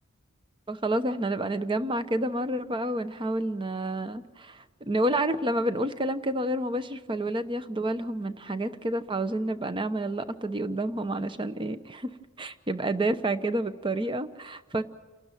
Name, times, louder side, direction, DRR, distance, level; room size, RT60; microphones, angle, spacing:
voice 1, 0.7-12.1 12.4-14.8, right 1 dB, 25° right, 11 dB, 0.9 m, -29 dB
29.0 x 12.5 x 9.1 m, 1.3 s
head